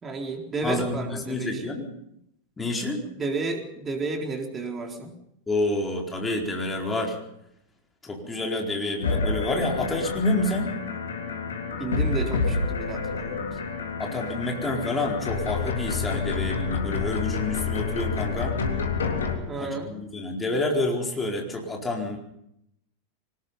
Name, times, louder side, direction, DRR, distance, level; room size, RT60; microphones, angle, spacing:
voice 1, 0.0-1.8 3.2-5.2 11.8-13.5 19.5-20.0, right 3 dB, 20° right, 4 dB, 4.1 m, -32 dB
voice 2, 0.6-1.9 2.6-3.0 5.5-7.2 8.0-10.7 14.0-18.6 19.6-22.2, left 2 dB, 15° left, 1 dB, 4.5 m, -28 dB
sound 1, 9.0-19.4, left 4 dB, 70° left, 3.3 m, -28 dB
24.0 x 20.5 x 5.7 m, 0.77 s
figure-of-eight pair, 90°, 0 cm